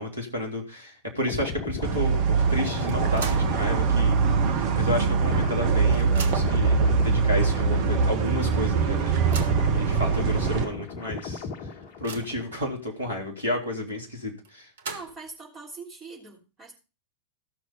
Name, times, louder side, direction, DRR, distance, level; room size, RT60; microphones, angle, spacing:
voice 1, 0.0-4.2 4.5-9.5 9.7-11.5 12.0-14.7, left 1 dB, 80° right, 1 dB, 3.4 m, -31 dB
sound 1, 1.2-8.7 9.0-12.7 13.0-13.3, left 4 dB, 40° left, 1.3 m, -36 dB
sound 2, 1.8-10.6, right 5 dB, 45° right, 1.5 m, -23 dB
sound 3, 2.9-3.6 4.0-4.1 5.2-5.3 5.6-6.7 7.4-7.5 7.9-8.0 9.0-9.7 10.4-10.5 10.9-11.0 11.5-12.5 14.4-15.4, right 5 dB, 65° right, 1.3 m, -39 dB
voice 2, 14.8-16.7, right 3 dB, 25° right, -4 dB, 3.5 m, -42 dB
14.5 x 6.4 x 5.3 m, 0.31 s
figure-of-eight pair, 90°, 0 cm